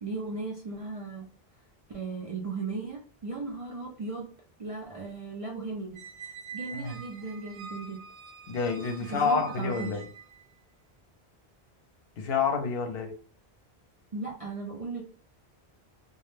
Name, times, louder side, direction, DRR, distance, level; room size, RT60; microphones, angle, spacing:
voice 1, 0.0-1.3 1.9-4.3 4.6-8.0 9.1-10.0 14.1-15.0, right 3 dB, 55° right, 0.4 m, -37 dB
Squeak, 6.0-10.4, right 6 dB, 75° right, 0.8 m, -45 dB
voice 2, 8.5-10.1 12.2-13.1, left 5 dB, 75° left, 0.8 m, -28 dB
2.2 x 2.0 x 3.0 m
omnidirectional pair, 1.0 m